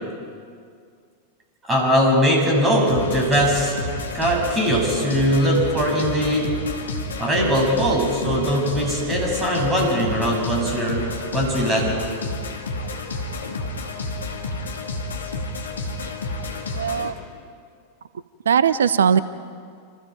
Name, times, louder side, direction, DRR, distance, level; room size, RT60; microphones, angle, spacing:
voice 1, 1.7-3.7 4.1-6.5 7.2-12.0, equal, 15° right, 0 dB, 7.0 m, -21 dB
sound 1, 2.9-17.1, left 2 dB, 70° left, 2.3 m, -30 dB
voice 2, 16.8-17.1 18.5-19.2, right 7 dB, 65° right, 16 dB, 0.7 m, -18 dB
28.0 x 27.0 x 4.7 m, 2.2 s
figure-of-eight pair, 90°, 0 cm